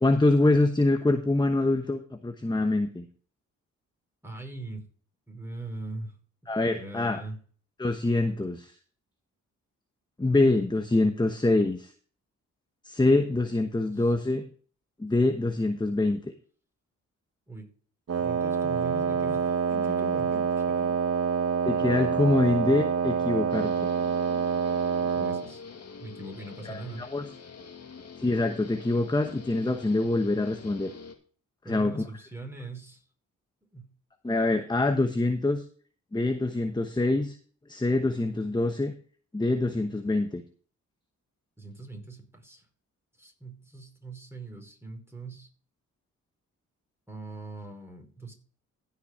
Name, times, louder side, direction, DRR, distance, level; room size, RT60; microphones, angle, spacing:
voice 1, 0.0-3.1 6.5-7.2 7.8-8.7 10.2-11.9 12.8-14.4 15.0-16.3 21.6-23.7 26.6-27.3 28.2-30.9 31.7-31.9 34.2-35.6 36.1-37.3 37.7-38.9 39.3-40.4, left 2 dB, 15° left, 7 dB, 1.0 m, -25 dB
voice 2, 4.2-4.8 5.3-6.1 6.4-7.4 13.8-14.1 17.5-17.7 18.2-21.0 25.1-25.6 26.0-27.1 31.6-33.0 33.7-33.9 41.6-42.6 43.2-45.5 47.1-48.3, right 2 dB, 5° right, 2 dB, 4.9 m, -41 dB
Wind instrument woodwind instrument, 18.1-25.5, right 6 dB, 50° right, 0.9 m, -27 dB
Guitar, 23.5-31.2, left 5 dB, 50° left, 2.0 m, -45 dB
16.0 x 5.9 x 3.6 m, 0.44 s
supercardioid pair, 50°, 33 cm